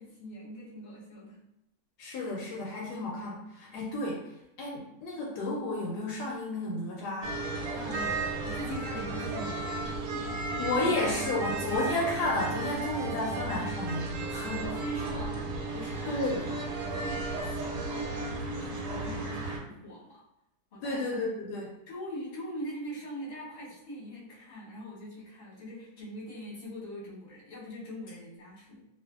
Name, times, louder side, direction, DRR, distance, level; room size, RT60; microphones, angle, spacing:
voice 1, 0.0-1.4 7.7-10.4 14.3-20.2 20.7-21.2 21.9-28.9, equal, 40° left, -7 dB, 1.0 m, -43 dB
voice 2, 2.0-4.3 4.6-7.3 10.6-14.6 16.1-16.4 20.8-21.7, left 2 dB, 75° left, -3 dB, 1.1 m, -32 dB
sound 1, 7.2-19.6, right 3 dB, 90° right, 1.2 m, -34 dB
2.6 x 2.5 x 2.3 m, 0.82 s
omnidirectional pair, 1.9 m